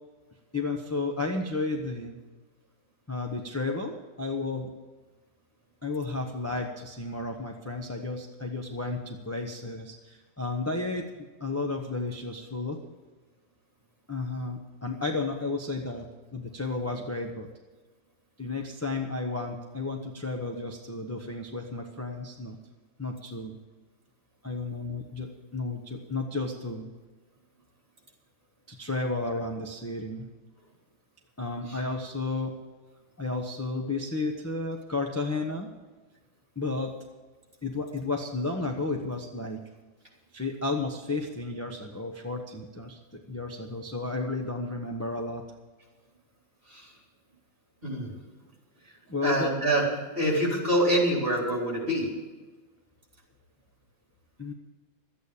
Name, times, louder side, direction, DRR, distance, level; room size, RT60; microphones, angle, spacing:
voice 1, 0.5-2.2 3.1-4.7 5.8-11.1 11.4-12.8 14.1-16.1 16.3-17.5 18.4-22.6 23.0-23.6 24.4-26.9 28.7-30.3 31.4-32.5 33.2-35.7 36.6-36.9 37.6-39.6 40.3-45.4 49.1-49.5 54.4-54.5, left 3 dB, 10° left, 1 dB, 0.8 m, -32 dB
voice 2, 47.8-48.1 49.2-49.9 50.2-52.1, right 1 dB, 30° right, -2 dB, 4.0 m, -25 dB
13.0 x 8.9 x 8.4 m, 1.3 s
omnidirectional pair, 1.9 m